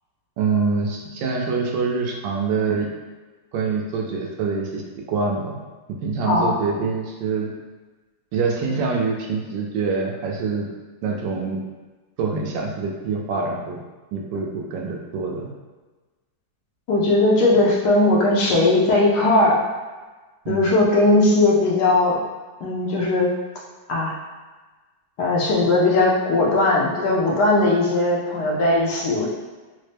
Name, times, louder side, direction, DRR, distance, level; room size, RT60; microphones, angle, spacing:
voice 1, 0.4-2.9 3.5-5.6 5.9-7.5 8.3-10.7 11.0-11.6 12.2-13.8 14.1-15.5 20.4-20.7, right 4 dB, 75° right, -1 dB, 1.2 m, -25 dB
voice 2, 16.9-19.6 20.5-22.2 22.6-23.3 23.9-24.1 25.2-29.3, left 2 dB, 70° left, -4 dB, 1.2 m, -18 dB
4.1 x 2.1 x 3.2 m, 1.3 s
omnidirectional pair, 2.1 m